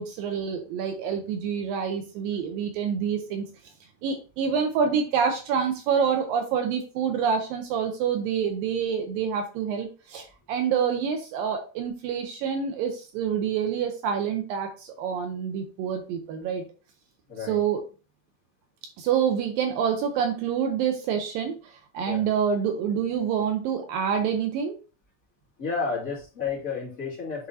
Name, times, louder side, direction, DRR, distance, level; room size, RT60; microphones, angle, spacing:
voice 1, 0.0-3.4 4.0-16.6 17.5-17.8 19.0-24.8, right 7 dB, 75° right, 5 dB, 2.2 m, -27 dB
voice 2, 17.3-17.6 22.0-22.3 25.6-27.5, left 5 dB, 30° left, -6 dB, 1.8 m, -31 dB
10.0 x 3.6 x 2.7 m, 0.36 s
omnidirectional pair, 4.6 m